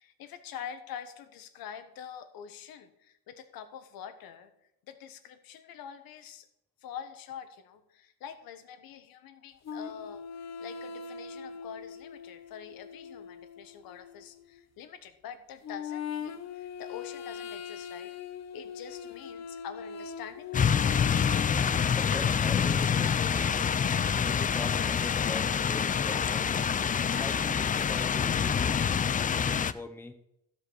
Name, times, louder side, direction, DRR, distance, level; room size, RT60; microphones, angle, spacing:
voice 1, 0.0-4.5 4.9-6.5 6.8-10.3 10.6-18.1 18.5-21.0, left 8 dB, 75° left, 10 dB, 1.3 m, -45 dB
sound 1, 9.6-14.7 15.6-21.5, left 7 dB, 50° left, 0.9 m, -41 dB
sound 2, 20.5-29.7, left 7 dB, 25° left, 0.4 m, -26 dB
voice 2, 21.9-23.7 24.3-26.7 27.1-28.7 29.3-30.2, left 2 dB, 5° left, 8 dB, 0.8 m, -42 dB
15.5 x 5.1 x 6.3 m, 0.80 s
cardioid pair, 125°, 35 cm